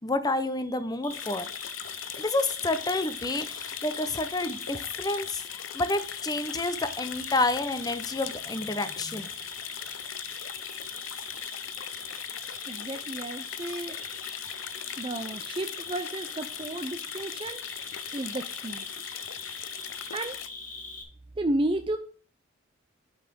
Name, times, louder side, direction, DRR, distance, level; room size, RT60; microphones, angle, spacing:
voice 1, 0.0-1.5 2.2-9.3, left 2 dB, 20° left, 12 dB, 0.7 m, -29 dB
Cricket, 1.0-21.0, left 3 dB, 45° left, 1.6 m, -42 dB
sound 1, 1.1-20.5, left 11 dB, 80° left, 0.5 m, -40 dB
voice 2, 12.7-14.0 15.0-17.6 18.1-18.9 20.1-20.4 21.4-22.0, right 1 dB, 25° right, 7 dB, 0.5 m, -32 dB
10.5 x 4.1 x 5.3 m, 0.42 s
head